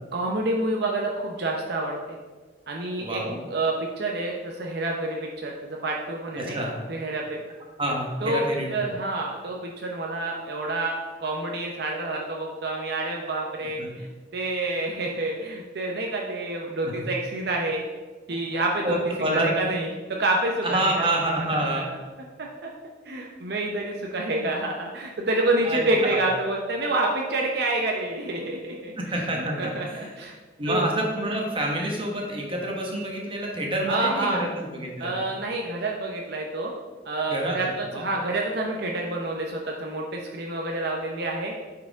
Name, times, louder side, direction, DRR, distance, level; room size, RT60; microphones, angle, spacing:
voice 1, 0.1-2.2 2.7-3.2 3.5-6.6 6.9-7.4 8.2-8.4 8.7-14.1 14.3-17.8 18.3-19.0 19.3-21.0 21.5-22.0 22.4-22.7 23.0-29.0 29.3-30.3 30.7-30.9 33.9-34.4 35.0-36.7 37.0-41.5, right 2 dB, 60° right, 0 dB, 0.7 m, -28 dB
voice 2, 3.0-3.4 6.3-6.7 7.8-8.7 13.8-13.9 16.8-16.9 18.8-19.5 20.6-21.9 25.6-26.2 29.0-30.1 30.6-35.2 37.3-38.1, right 1 dB, 30° right, -1 dB, 1.2 m, -28 dB
8.6 x 4.7 x 3.5 m, 1.3 s
head